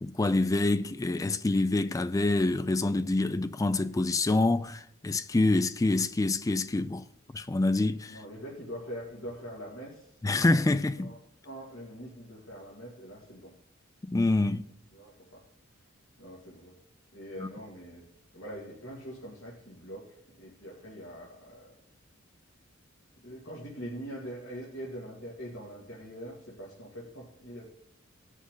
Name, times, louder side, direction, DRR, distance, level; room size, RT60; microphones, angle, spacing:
voice 1, 0.0-7.0 7.3-8.2 10.2-11.1 14.1-14.7 17.4-17.5, left 2 dB, 15° left, 0.3 m, -26 dB
voice 2, 8.1-10.2 11.0-11.2 11.4-13.5 14.9-15.4 16.2-16.8 17.1-18.0 18.3-20.1 20.3-21.7 23.2-27.7, equal, 65° left, 2.4 m, -43 dB
17.0 x 6.4 x 3.8 m
head